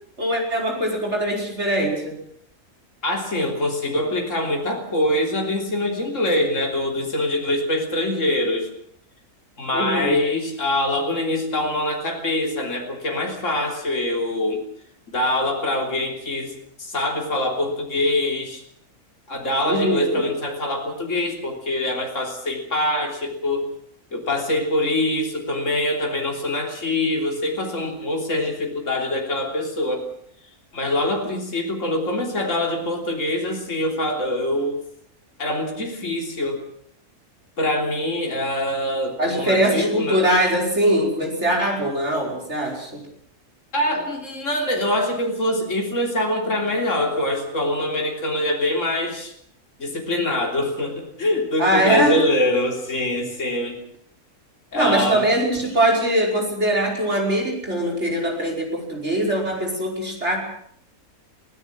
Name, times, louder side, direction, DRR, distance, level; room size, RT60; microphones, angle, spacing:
voice 1, 0.2-2.2 9.7-10.2 19.7-20.2 39.2-43.0 51.6-52.2 54.7-60.4, right 1 dB, 50° right, 0 dB, 5.7 m, -22 dB
voice 2, 3.0-8.7 9.6-14.6 15.1-16.5 16.8-18.6 19.3-23.6 24.1-30.1 30.7-34.8 35.4-36.6 37.6-40.2 43.7-49.3 49.8-53.8 54.7-55.2, left 1 dB, 55° left, 1 dB, 3.8 m, -24 dB
23.0 x 17.0 x 7.5 m, 0.67 s
omnidirectional pair, 1.6 m